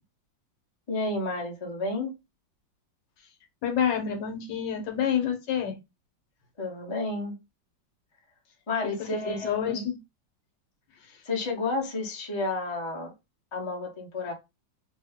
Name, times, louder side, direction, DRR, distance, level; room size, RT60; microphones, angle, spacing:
voice 1, 0.9-2.1 6.6-7.4 8.7-9.8 11.3-13.1 13.5-14.3, left 2 dB, 30° left, 0.5 m, -31 dB
voice 2, 3.6-5.8 9.1-10.0, left 8 dB, 70° left, 1.4 m, -28 dB
2.7 x 2.7 x 3.5 m
omnidirectional pair, 2.0 m